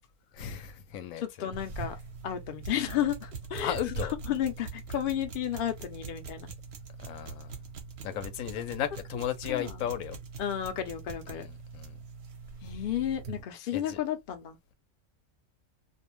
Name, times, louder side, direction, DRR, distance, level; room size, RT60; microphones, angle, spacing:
voice 1, 0.3-1.5 3.6-4.1 7.0-7.6 8.0-10.2 11.3-12.0 13.7-14.0, left 10 dB, 90° left, 1.0 m, -35 dB
voice 2, 1.2-2.0 2.2-3.8 4.3-6.5 9.5-9.8 10.4-11.5 12.6-14.6, left 10 dB, 55° left, 0.6 m, -32 dB
sound 1, 1.5-13.4, right 4 dB, 60° right, 0.9 m, -42 dB
2.5 x 2.1 x 2.9 m
omnidirectional pair, 1.4 m